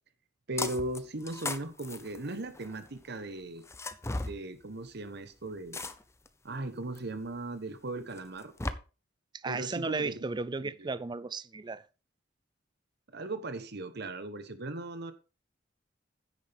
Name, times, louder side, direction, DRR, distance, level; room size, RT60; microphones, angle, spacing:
voice 1, 0.5-3.6 4.2-5.8 6.4-8.5 9.4-10.2 10.6-10.9 13.1-15.1, right 2 dB, 60° right, 1.1 m, -38 dB
sound 1, 0.6-1.0 1.3-2.8 3.7-4.3 5.7-6.3 6.9-7.0 8.2-8.7, left 2 dB, 15° left, 0.7 m, -36 dB
voice 2, 9.3-11.8, right 3 dB, 25° right, 0.4 m, -34 dB
10.0 x 9.4 x 3.5 m
head